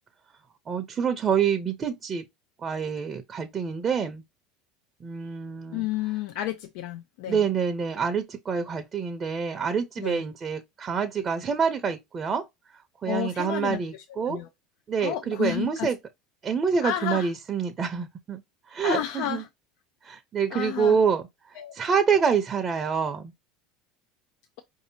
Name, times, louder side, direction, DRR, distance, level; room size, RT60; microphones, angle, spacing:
voice 1, 0.7-2.2 2.6-4.2 5.0-5.9 7.3-12.4 13.0-14.4 14.9-16.0 16.4-18.4 18.7-19.4 20.0-21.2 21.7-23.3, right 6 dB, 35° right, 0.7 m, -26 dB
voice 2, 5.7-7.4 10.0-10.2 13.0-14.5 15.0-15.9 16.8-17.3 18.8-19.5 20.5-21.0 21.5-21.8, left 13 dB, 70° left, 0.4 m, -31 dB
4.8 x 2.7 x 2.7 m
hypercardioid pair, 90°, 0 cm